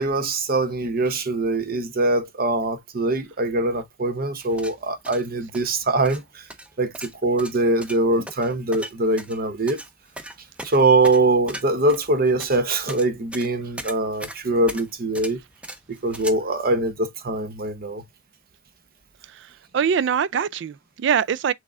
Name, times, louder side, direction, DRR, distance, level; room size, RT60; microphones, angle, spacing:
voice 1, 0.0-6.4 6.8-9.8 10.6-15.4 15.9-18.0, right 2 dB, 50° right, 0.8 m, -22 dB
sound 1, 4.4-16.3, right 1 dB, 5° right, 0.5 m, -39 dB
voice 2, 19.7-21.5, right 7 dB, 65° right, 0.3 m, -23 dB
6.2 x 3.5 x 2.4 m
head